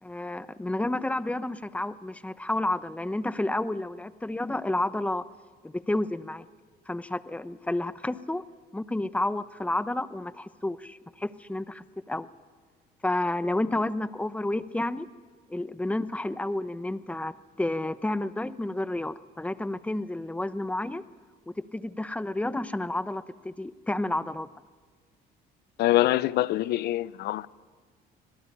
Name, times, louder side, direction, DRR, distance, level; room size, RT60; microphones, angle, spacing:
voice 1, 0.0-5.3 5.6-6.5 6.9-8.4 8.7-12.3 13.0-15.1 15.5-21.0 21.5-24.5, left 1 dB, 10° left, 0.9 m, -30 dB
voice 2, 25.8-27.5, left 15 dB, 75° left, 0.8 m, -24 dB
25.0 x 18.5 x 9.9 m
cardioid pair, 110°, 17 cm